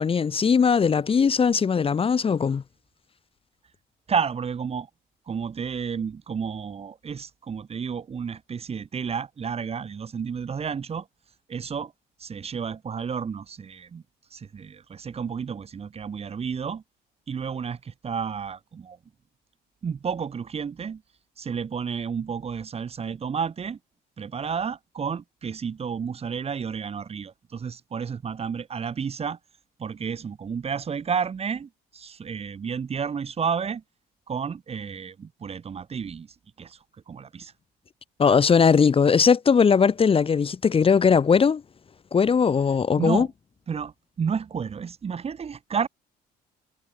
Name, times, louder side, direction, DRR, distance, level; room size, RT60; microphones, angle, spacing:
voice 1, 0.0-2.6 38.2-41.6 42.1-43.3, left 6 dB, 35° left, 2.5 m, -19 dB
voice 2, 4.1-4.9 5.3-11.1 11.5-11.9 12.2-14.0 14.3-16.8 17.3-19.0 19.8-21.0 21.4-23.8 24.2-29.4 29.8-33.8 34.3-36.8 37.1-37.5 42.6-43.3 43.7-43.9 44.2-45.9, right 6 dB, 35° right, 7.0 m, -31 dB
cardioid pair, 110°, 17 cm